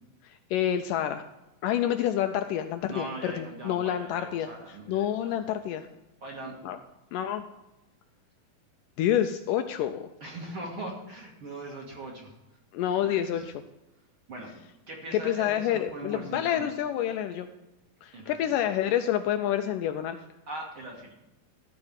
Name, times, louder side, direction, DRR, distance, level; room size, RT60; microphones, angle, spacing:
voice 1, 0.2-1.2 1.6-4.5 4.9-5.9 6.6-6.8 7.1-7.4 9.0-10.1 12.7-13.5 15.1-17.5 18.0-20.2, left 10 dB, 80° left, 7 dB, 2.0 m, -28 dB
voice 2, 2.9-5.4 6.2-6.6 10.2-12.4 13.0-13.4 14.3-14.5 14.9-16.7 18.1-18.6 20.5-21.1, right 1 dB, 45° right, -1 dB, 2.0 m, -40 dB
14.0 x 4.8 x 8.8 m, 0.99 s
omnidirectional pair, 4.2 m